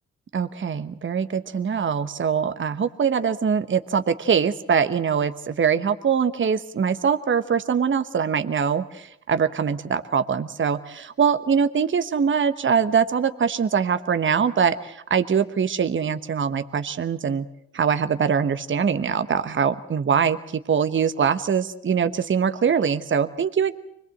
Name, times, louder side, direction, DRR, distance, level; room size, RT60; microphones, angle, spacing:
voice 1, 0.3-17.5 17.7-20.4 20.7-23.7, right 7 dB, 40° right, 11 dB, 1.1 m, -23 dB
25.0 x 19.0 x 7.9 m, 0.76 s
hypercardioid pair, 45°, 29 cm